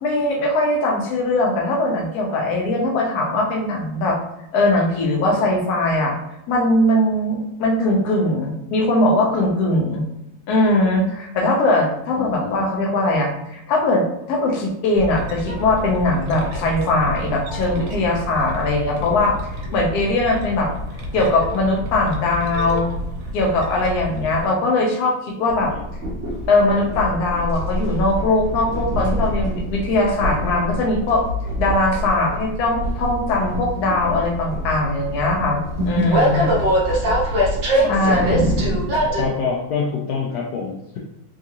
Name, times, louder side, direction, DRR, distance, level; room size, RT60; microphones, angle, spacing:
voice 1, 0.0-4.2 4.5-6.1 6.5-10.0 10.5-19.3 19.7-20.7 21.1-22.9 23.3-25.7 26.5-31.2 31.6-35.6 35.9-36.5 37.8-38.6, left 2 dB, 65° left, 0 dB, 1.0 m, -20 dB
voice 2, 12.1-12.7 25.7-25.8 33.8-34.2 36.4-36.6 37.8-37.9 39.2-41.0, left 5 dB, 85° left, -3 dB, 0.8 m, -27 dB
sound 1, 15.0-24.5, equal, 75° right, 1.3 m, -31 dB
Train, 25.5-39.3, equal, 55° right, 0.8 m, -23 dB
3.6 x 2.4 x 2.8 m, 0.87 s
omnidirectional pair, 2.2 m